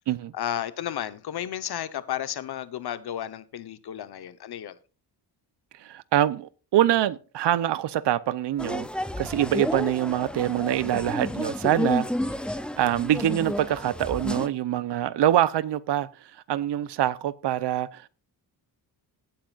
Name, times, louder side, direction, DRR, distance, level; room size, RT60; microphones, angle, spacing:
voice 1, 0.3-4.8, left 11 dB, 65° left, 1.0 m, -33 dB
voice 2, 5.8-8.9 9.2-12.0 12.8-16.1 16.5-18.1, right 12 dB, 75° right, 0.8 m, -24 dB
sound 1, 8.6-14.5, left 1 dB, ahead, 0.5 m, -31 dB
17.5 x 8.7 x 2.5 m
wide cardioid pair, 140°, 42 cm